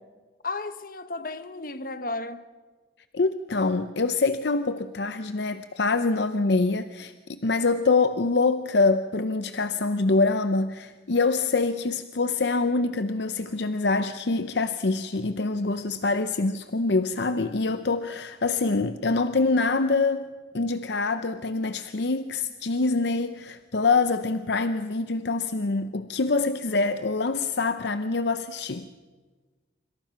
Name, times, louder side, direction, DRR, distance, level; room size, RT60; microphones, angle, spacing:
voice 1, 0.4-2.4, left 3 dB, 45° left, 1.0 m, -33 dB
voice 2, 3.1-28.9, left 3 dB, 65° left, 0.7 m, -25 dB
25.5 x 25.5 x 5.8 m
head